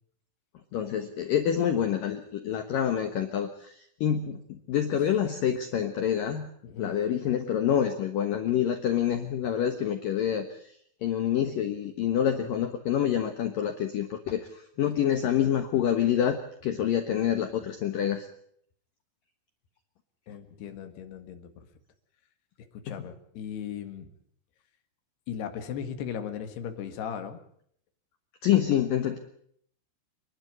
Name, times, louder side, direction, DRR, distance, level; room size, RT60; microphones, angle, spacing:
voice 1, 0.7-6.5 6.8-10.8 11.0-18.3 22.9-23.1 28.4-29.2, left 9 dB, 85° left, 7 dB, 1.9 m, -27 dB
voice 2, 6.6-6.9 20.3-21.7 22.7-24.1 25.3-27.4, left 8 dB, 60° left, 7 dB, 3.4 m, -37 dB
27.5 x 11.5 x 9.6 m, 0.66 s
omnidirectional pair, 6.0 m